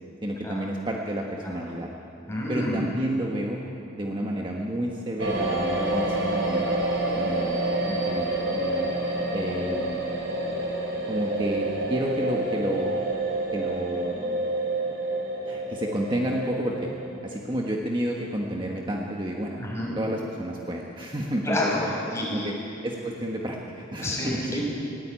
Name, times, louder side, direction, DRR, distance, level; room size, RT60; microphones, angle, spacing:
voice 1, 0.2-1.9 2.5-3.6 3.9-6.7 7.2-8.9 9.3-10.0 11.1-12.9 13.5-14.5 15.4-16.9 17.2-19.6 20.0-21.7 22.3-22.5 22.8-24.6, right 1 dB, 25° right, -1 dB, 1.5 m, -30 dB
voice 2, 2.3-2.9 19.6-19.9 21.4-22.5 24.0-24.7, left 1 dB, 15° left, -3 dB, 6.0 m, -29 dB
sound 1, 5.2-17.1, right 1 dB, 60° right, 5.2 m, -28 dB
20.0 x 17.0 x 9.1 m, 2.8 s
head